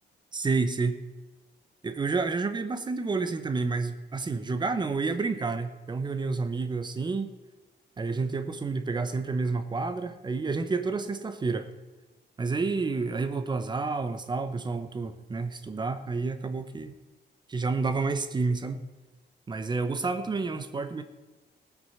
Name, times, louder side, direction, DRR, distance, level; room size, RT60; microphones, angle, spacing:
voice 1, 0.3-1.0 1.8-7.3 8.0-11.7 12.4-16.9 17.5-18.8 19.5-21.0, right 4 dB, 25° right, 9 dB, 0.9 m, -29 dB
19.0 x 6.3 x 5.7 m, 1.2 s
wide cardioid pair, 165°, 18 cm